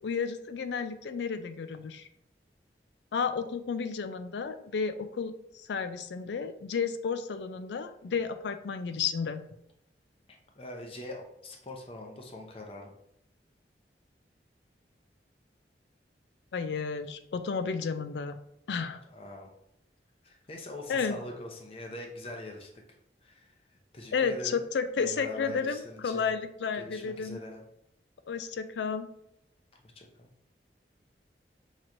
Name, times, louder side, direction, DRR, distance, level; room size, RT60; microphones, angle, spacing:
voice 1, 0.0-2.1 3.1-9.5 16.5-18.4 18.7-19.0 20.9-21.2 24.1-27.4 28.3-29.1, left 5 dB, 80° left, 10 dB, 0.4 m, -32 dB
voice 2, 10.6-12.9 19.1-19.5 20.2-22.7 23.2-24.6 25.0-26.3 26.7-27.6 29.8-30.3, left 1 dB, 30° left, 1 dB, 0.6 m, -43 dB
5.8 x 3.0 x 2.6 m, 0.78 s
head